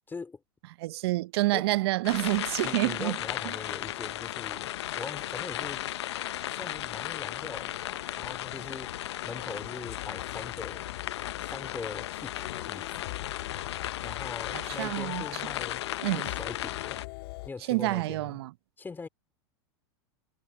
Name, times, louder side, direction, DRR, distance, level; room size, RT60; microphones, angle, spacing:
voice 1, 0.1-0.4 1.5-1.7 2.6-5.9 6.5-10.9 11.5-13.1 14.0-15.8 16.1-17.0 17.5-18.4 18.8-19.1, left 4 dB, 15° left, 3.9 m, -42 dB
voice 2, 0.8-3.2 3.4-3.5 14.5-15.4 16.0-16.3 17.7-18.5, right 19 dB, 65° right, 0.7 m, -28 dB
sound 1, 2.0-17.1, left 13 dB, 80° left, 0.8 m, -35 dB
sound 2, 9.1-17.5, left 23 dB, 65° left, 2.1 m, -44 dB
hypercardioid pair, 115°, 14 cm